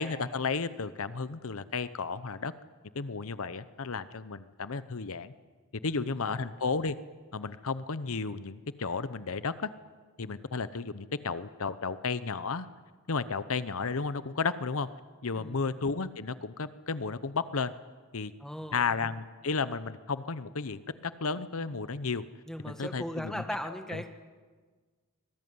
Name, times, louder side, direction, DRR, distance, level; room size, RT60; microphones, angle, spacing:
voice 1, 0.0-2.5 2.9-5.3 5.8-7.0 7.3-9.7 10.2-12.7 13.1-14.9 15.2-17.7 18.1-18.3 18.7-22.2 22.6-23.4 23.9-24.0, left 4 dB, 65° left, 14 dB, 0.8 m, -33 dB
voice 2, 5.8-6.3 15.3-15.8 18.4-18.8 22.5-24.1, equal, ahead, 6 dB, 1.9 m, -38 dB
25.5 x 19.5 x 9.6 m, 1.5 s
head